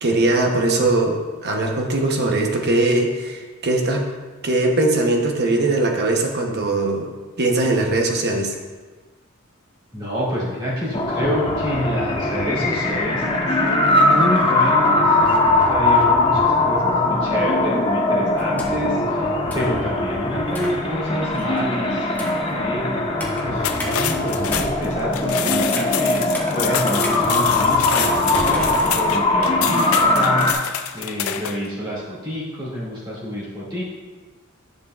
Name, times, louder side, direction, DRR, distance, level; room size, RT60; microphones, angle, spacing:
voice 1, 0.0-4.0 4.4-7.1 7.4-8.6, right 2 dB, 50° right, 1 dB, 1.0 m, -20 dB
voice 2, 9.9-22.9 23.4-26.3 26.5-33.8, equal, 20° right, -9 dB, 2.3 m, -27 dB
sound 1, 10.9-30.5, left 2 dB, 25° left, 0.8 m, -20 dB
sound 2, 18.4-19.0 19.5-19.8 20.5-20.8 21.3-21.6 22.1-22.5 23.2-23.4 23.8-23.9 24.4-26.0 26.3-26.5 27.0-27.2 27.7-27.8 28.3-29.4, left 1 dB, 10° left, 1.2 m, -34 dB
sound 3, 23.6-31.7, left 9 dB, 75° left, 0.5 m, -27 dB
10.5 x 6.6 x 2.5 m, 1.4 s
head